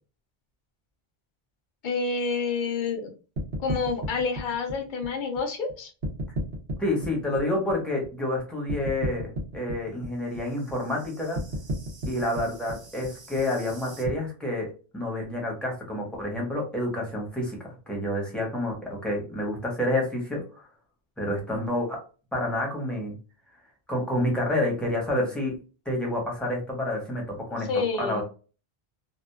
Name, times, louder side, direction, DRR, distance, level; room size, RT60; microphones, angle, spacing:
voice 1, 1.8-3.1 3.6-5.9 27.6-28.2, left 4 dB, 55° left, 5 dB, 0.7 m, -28 dB
sound 1, 3.4-5.7 6.0-8.4 8.7-14.1, right 1 dB, 70° right, 1.0 m, -34 dB
voice 2, 6.8-9.3 9.5-11.4 12.0-14.7 14.9-20.6 21.2-22.0 22.3-23.2 23.9-25.5 25.8-27.7 28.0-28.2, left 1 dB, ahead, -1 dB, 0.9 m, -28 dB
2.8 x 2.3 x 2.2 m, 0.35 s
omnidirectional pair, 1.1 m